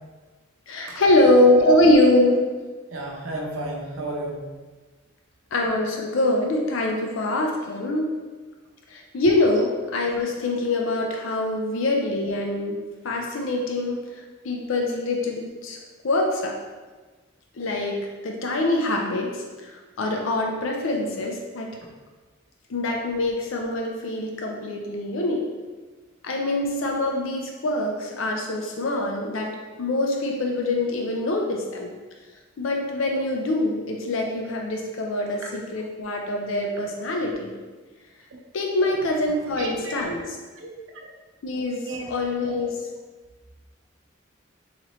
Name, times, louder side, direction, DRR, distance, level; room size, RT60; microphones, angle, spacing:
voice 1, 0.7-2.4 5.5-8.1 8.9-12.8 13.0-14.0 14.4-15.8 16.0-16.6 17.5-21.8 22.7-25.5 26.2-31.9 32.6-37.5 38.5-40.2 41.4-41.8 42.1-42.7, left 1 dB, 80° left, 1 dB, 0.5 m, -24 dB
voice 2, 2.9-4.5 21.8-21.9 35.4-35.5 39.6-40.0 40.5-41.1 41.8-42.1 42.4-42.6 43.2-43.3, right 2 dB, 90° right, -1 dB, 0.8 m, -33 dB
4.0 x 3.0 x 3.0 m, 1.3 s
head